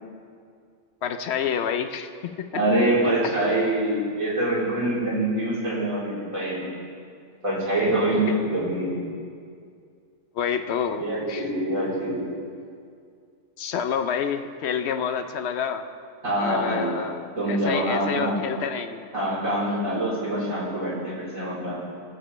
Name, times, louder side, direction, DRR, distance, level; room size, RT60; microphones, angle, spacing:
voice 1, 1.0-2.6 10.3-11.0 11.3-11.4 13.6-15.9 16.4-17.2 17.5-19.1, left 7 dB, 65° left, 8 dB, 0.8 m, -28 dB
voice 2, 2.5-6.7 7.4-9.0 11.0-12.3 16.2-16.9 17.4-18.4 19.1-21.8, right 1 dB, 85° right, -8 dB, 3.8 m, -25 dB
19.0 x 7.4 x 3.1 m, 2.3 s
omnidirectional pair, 1.4 m